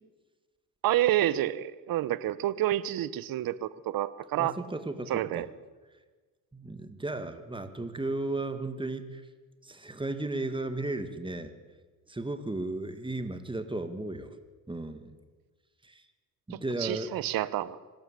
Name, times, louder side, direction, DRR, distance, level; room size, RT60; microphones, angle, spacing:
voice 1, 0.8-4.6 5.1-5.5 16.5-17.8, right 13 dB, 70° right, 17 dB, 1.0 m, -29 dB
voice 2, 4.4-5.4 6.5-9.2 9.6-11.5 12.1-14.3 14.7-15.1 15.8-16.0 16.5-17.1, right 2 dB, 15° right, 9 dB, 2.3 m, -35 dB
25.0 x 12.5 x 8.4 m, 1.4 s
cardioid pair, 85°, 36 cm